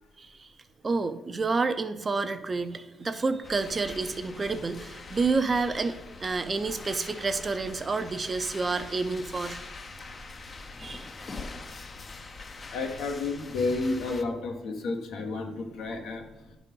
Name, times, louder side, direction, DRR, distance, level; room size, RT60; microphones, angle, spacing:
voice 1, 0.2-0.5 0.8-9.6 10.8-11.1, right 4 dB, 30° right, 10 dB, 0.6 m, -29 dB
sound 1, 3.4-14.2, left 3 dB, 35° left, 0.7 m, -43 dB
voice 2, 9.9-10.5 12.7-16.6, left 3 dB, 75° left, 3 dB, 1.3 m, -32 dB
10.0 x 4.1 x 5.4 m, 0.98 s
cardioid pair, 90°, 0 cm